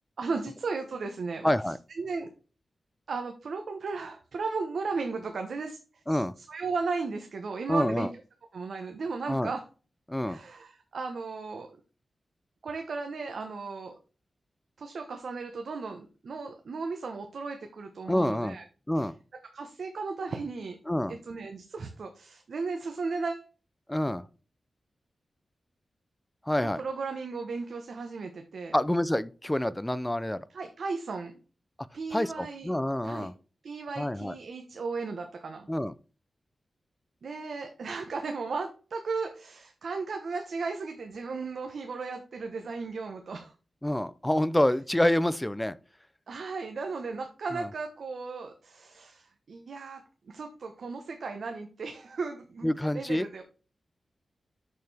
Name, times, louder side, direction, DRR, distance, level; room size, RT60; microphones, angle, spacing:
voice 1, 0.2-1.5 2.0-2.3 3.1-5.8 6.1-8.1 8.5-9.6 10.3-11.7 12.6-14.0 14.8-18.6 19.0-19.1 19.5-20.8 21.1-23.5 26.8-28.7 30.5-31.4 31.9-32.7 33.0-33.3 33.6-35.7 37.2-43.5 46.3-50.0 50.3-53.4, right 4 dB, 75° right, 1.1 m, -35 dB
voice 2, 1.4-1.8 6.1-6.3 7.7-8.1 9.3-9.5 10.1-10.4 18.1-18.6 18.9-19.2 20.9-21.1 23.9-24.2 26.4-26.8 28.7-30.5 32.1-33.3 34.0-34.4 35.7-35.9 43.8-45.8 47.5-47.7 52.6-53.3, left 1 dB, 10° left, 0.4 m, -27 dB
6.6 x 6.6 x 3.4 m
wide cardioid pair, 105°, 0 cm